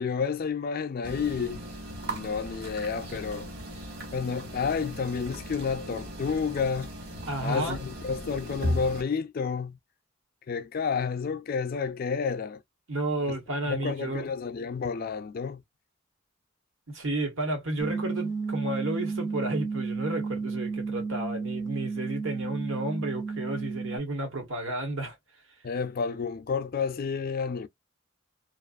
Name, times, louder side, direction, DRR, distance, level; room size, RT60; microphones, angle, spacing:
voice 1, 0.0-1.6 2.1-3.5 4.1-6.9 7.4-9.8 10.5-12.6 13.3-13.4 13.7-15.6 25.6-27.7, left 5 dB, 45° left, 0.4 m, -30 dB
sound 1, 1.0-9.0, equal, 55° right, 1.3 m, -37 dB
voice 2, 7.3-7.8 12.9-14.3 16.9-25.2, right 1 dB, 85° right, 1.3 m, -32 dB
sound 2, 17.8-24.0, right 4 dB, 20° right, 0.4 m, -32 dB
2.6 x 2.4 x 2.2 m
head